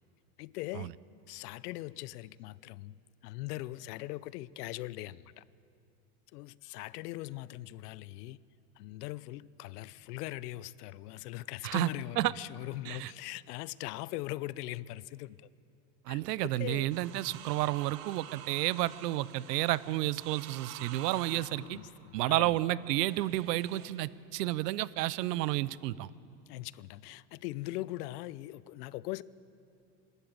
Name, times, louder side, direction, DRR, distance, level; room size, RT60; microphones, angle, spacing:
voice 1, 0.4-0.9 1.3-5.4 6.3-8.4 8.8-15.5 16.1-16.9 21.3-22.5 26.5-29.2, left 17 dB, 75° left, 0.7 m, -41 dB
voice 2, 16.1-21.8 22.1-26.1, right 16 dB, 90° right, 0.8 m, -31 dB
sound 1, 16.9-24.0 25.0-25.6, right 11 dB, 55° right, 1.6 m, -49 dB
26.5 x 12.5 x 8.9 m
supercardioid pair, 135°, 47 cm